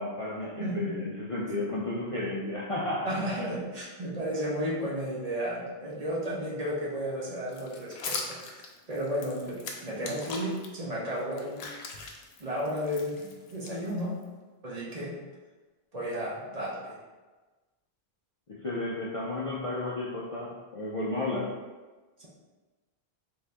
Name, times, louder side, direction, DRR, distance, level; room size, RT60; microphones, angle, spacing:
voice 1, 0.0-3.4 18.5-21.5, left 2 dB, 50° left, -5 dB, 0.4 m, -33 dB
voice 2, 0.6-1.0 3.0-8.6 8.9-11.7 12.4-14.2 14.6-15.2 15.9-17.0 22.2-22.3, equal, 40° right, -5 dB, 0.8 m, -33 dB
sound 1, 7.5-10.7 11.1-14.2, left 4 dB, 75° left, 0.8 m, -40 dB
3.6 x 2.6 x 3.4 m, 1.3 s
omnidirectional pair, 1.0 m